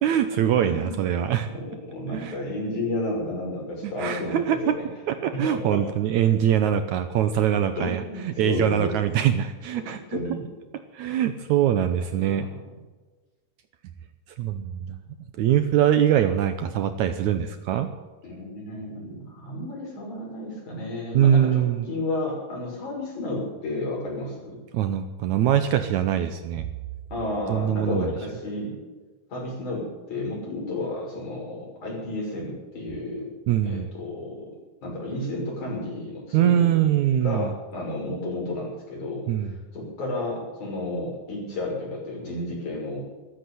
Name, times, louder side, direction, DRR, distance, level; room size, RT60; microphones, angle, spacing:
voice 1, 0.0-1.5 2.1-2.4 3.8-4.8 5.1-10.2 10.9-12.5 14.4-15.0 15.4-17.9 21.1-21.9 24.7-26.7 27.5-28.1 33.5-33.9 36.3-37.5 39.3-39.5, right 10 dB, 70° right, 9 dB, 1.9 m, -23 dB
voice 2, 0.6-1.0 1.5-4.9 5.3-5.8 7.8-8.9 9.9-10.5 12.1-12.6 18.2-24.6 27.1-28.7 29.3-33.3 33.6-34.4 34.8-36.7 37.2-43.0, left 2 dB, 60° left, -2 dB, 7.4 m, -32 dB
14.0 x 13.0 x 7.7 m, 1.3 s
omnidirectional pair, 3.9 m